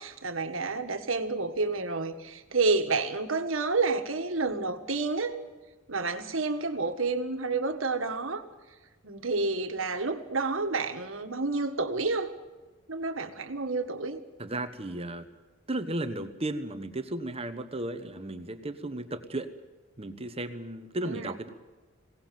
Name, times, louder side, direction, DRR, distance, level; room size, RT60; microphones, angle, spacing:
voice 1, 0.0-5.3 5.9-8.4 9.0-12.3 12.9-14.2 21.1-21.3, right 3 dB, 75° right, 7 dB, 1.8 m, -29 dB
voice 2, 14.4-15.3 15.7-19.5 20.0-21.5, right 1 dB, 30° right, 9 dB, 1.2 m, -34 dB
22.0 x 18.5 x 7.7 m, 1.3 s
head